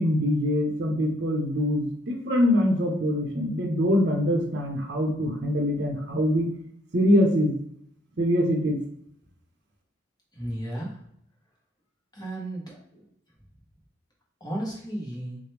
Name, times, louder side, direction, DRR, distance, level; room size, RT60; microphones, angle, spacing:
voice 1, 0.0-6.5 6.9-7.5 8.2-8.8, equal, 60° right, 1 dB, 0.8 m, -24 dB
voice 2, 10.3-10.9 12.1-13.1 14.4-15.4, right 1 dB, 20° left, -3 dB, 1.1 m, -34 dB
4.8 x 2.1 x 3.3 m, 0.70 s
head